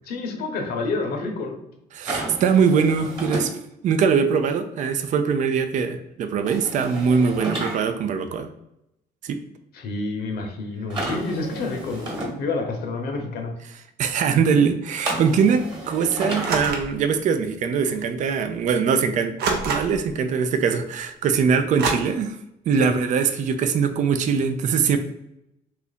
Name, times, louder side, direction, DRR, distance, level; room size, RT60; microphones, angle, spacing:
voice 1, 0.1-1.6 9.7-13.5 21.6-21.7 22.7-22.9, left 3 dB, 65° left, 3 dB, 0.8 m, -28 dB
voice 2, 1.9-3.5 3.8-8.5 9.2-9.4 14.0-19.4 19.7-22.4 22.7-25.0, right 6 dB, 50° right, 8 dB, 0.4 m, -22 dB
sound 1, 2.0-3.5 6.5-7.8 10.9-12.3 15.1-16.6, right 1 dB, 25° right, 1.3 m, -31 dB
sound 2, 16.4-17.0 18.0-18.1 19.4-20.1 21.8-21.9, right 4 dB, 75° right, 0.7 m, -26 dB
2.8 x 2.5 x 3.9 m, 0.83 s
cardioid pair, 110°, 17 cm